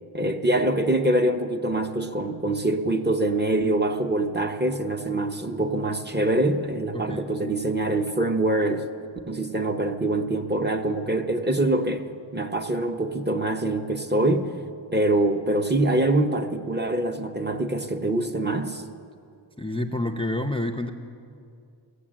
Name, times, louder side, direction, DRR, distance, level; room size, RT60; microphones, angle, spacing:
voice 1, 0.1-8.9 9.3-14.5 14.9-18.8, right 1 dB, 20° right, 0.7 m, -24 dB
voice 2, 19.6-20.9, left 1 dB, 10° left, 0.5 m, -28 dB
16.5 x 7.9 x 7.5 m
wide cardioid pair, 70°, 47 cm